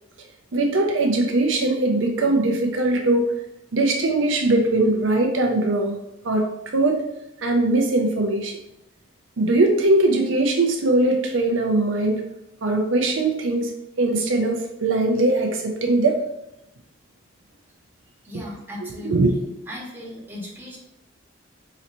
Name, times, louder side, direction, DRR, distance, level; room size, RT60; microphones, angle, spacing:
voice 1, 0.5-3.3 3.7-6.0 6.2-6.5 6.7-7.0 7.4-8.6 9.4-12.2 12.6-13.7 14.0-16.2 18.3-18.4 18.8-19.3, right 2 dB, 70° right, 2 dB, 0.6 m, -21 dB
voice 2, 18.2-20.8, left 1 dB, 10° right, -6 dB, 1.3 m, -37 dB
3.9 x 3.0 x 4.2 m, 0.85 s
head